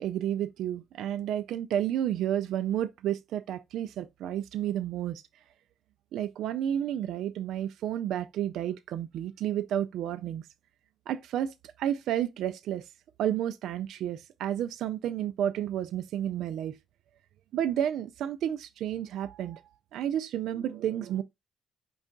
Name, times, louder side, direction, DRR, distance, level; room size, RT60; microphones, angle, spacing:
voice 1, 0.0-5.2 6.1-10.5 11.1-12.9 13.2-16.8 17.5-19.6 19.9-21.2, right 10 dB, 80° right, 0.3 m, -31 dB
5.3 x 2.3 x 3.7 m
cardioid pair, 90°, 0 cm